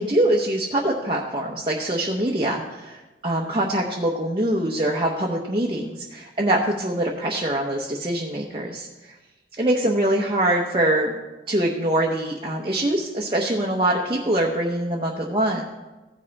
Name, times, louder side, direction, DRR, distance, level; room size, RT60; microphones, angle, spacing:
voice 1, 0.0-9.1 9.6-11.2 11.5-15.6, right 1 dB, 25° right, -2 dB, 0.8 m, -24 dB
15.5 x 5.4 x 4.0 m, 1.1 s
head